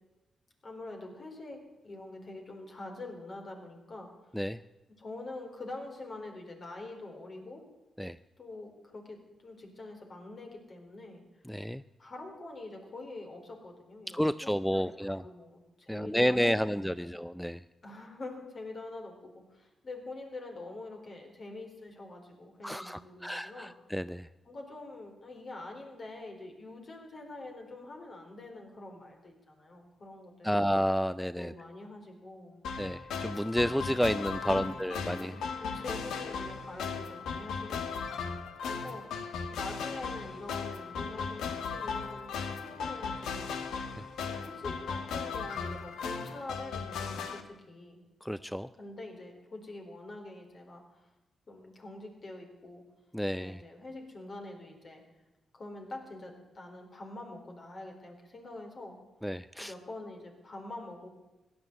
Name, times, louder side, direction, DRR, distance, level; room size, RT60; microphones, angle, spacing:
voice 1, 0.6-4.1 5.0-7.6 8.4-11.2 12.0-17.1 17.8-23.7 24.5-30.5 31.4-32.6 34.4-34.8 35.2-38.1 38.6-39.1 39.5-42.3 42.6-43.5 44.2-48.0 48.8-51.1 51.5-52.8 53.4-55.0 55.5-59.0 59.6-61.1, left 2 dB, 50° left, 2 dB, 4.3 m, -45 dB
voice 2, 11.5-11.8 14.1-15.2 15.9-17.6 22.6-24.3 30.4-31.5 32.8-35.4 44.0-44.1 48.2-48.7 53.1-53.6 59.2-59.7, equal, 5° left, 14 dB, 0.4 m, -31 dB
sound 1, 32.6-47.4, left 5 dB, 85° left, 1.3 m, -37 dB
16.5 x 11.0 x 8.1 m, 1.1 s
supercardioid pair, 55°, 0 cm